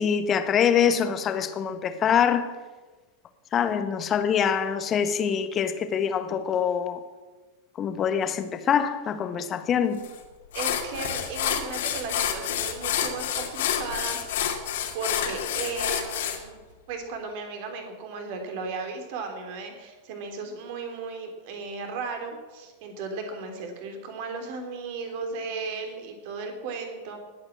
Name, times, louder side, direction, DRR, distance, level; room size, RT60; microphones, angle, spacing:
voice 1, 0.0-2.5 3.5-7.0 7.8-10.0, left 8 dB, 25° left, 1.4 m, -24 dB
sound 1, 10.0-10.2 10.5-16.4, left 9 dB, 55° left, 2.4 m, -28 dB
voice 2, 10.5-14.5 14.9-16.6 16.9-27.2, right 4 dB, 50° right, 3.3 m, -35 dB
20.0 x 8.7 x 7.5 m
figure-of-eight pair, 90°, 0 cm